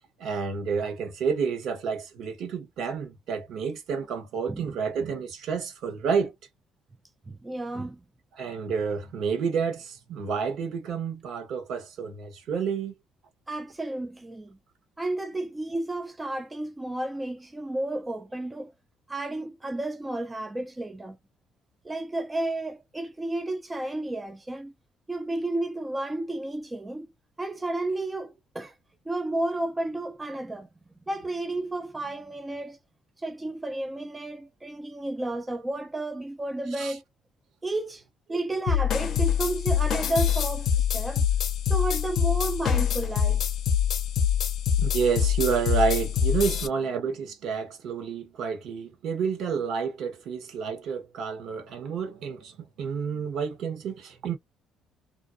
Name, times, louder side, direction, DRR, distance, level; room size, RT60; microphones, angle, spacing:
voice 1, 0.2-6.3 8.3-12.9 36.8-37.0 44.8-54.4, right 6 dB, 70° right, 0.9 m, -29 dB
voice 2, 7.3-8.0 13.5-14.6 15.0-18.7 19.1-21.2 21.8-24.7 25.1-27.1 27.4-28.7 29.1-30.7 31.1-32.8 33.2-37.0 37.6-38.0 38.3-41.2 41.7-43.4, right 2 dB, 15° right, 0.4 m, -32 dB
sound 1, 38.7-46.7, left 8 dB, 60° left, 0.5 m, -25 dB
2.5 x 2.0 x 2.5 m
supercardioid pair, 80°, 0 cm